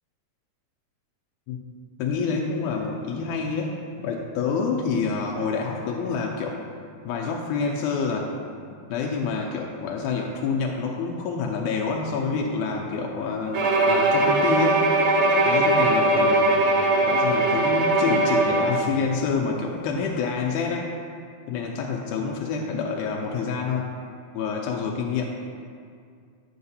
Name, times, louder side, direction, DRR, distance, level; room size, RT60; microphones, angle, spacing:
voice 1, 2.0-6.6 7.0-8.3 8.9-14.9 15.5-16.6 17.0-20.9 21.5-23.9 24.3-25.3, left 5 dB, 85° left, 0 dB, 2.0 m, -27 dB
Bowed string instrument, 13.5-18.9, right 2 dB, 70° right, 1.3 m, -20 dB
9.4 x 6.5 x 2.7 m, 2.2 s
omnidirectional pair, 3.5 m